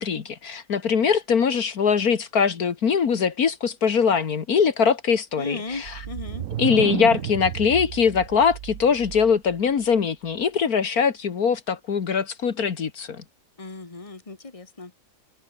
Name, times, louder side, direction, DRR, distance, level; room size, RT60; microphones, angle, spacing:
voice 1, 0.0-5.9 6.6-13.2, left 6 dB, 70° left, 2.0 m, -22 dB
voice 2, 5.4-6.4 7.0-7.2 13.6-15.0, left 3 dB, 20° left, 2.1 m, -36 dB
sound 1, 5.7-9.5, right 12 dB, 65° right, 0.9 m, -32 dB
omnidirectional pair, 1.7 m